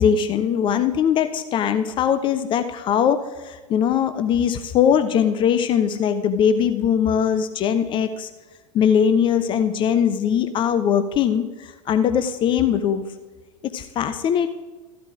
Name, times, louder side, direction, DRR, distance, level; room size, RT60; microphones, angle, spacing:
voice 1, 0.0-8.3 8.7-13.0 13.6-14.5, left 8 dB, 30° left, 10 dB, 0.5 m, -21 dB
14.5 x 12.0 x 2.5 m, 1.3 s
figure-of-eight pair, 85°, 17 cm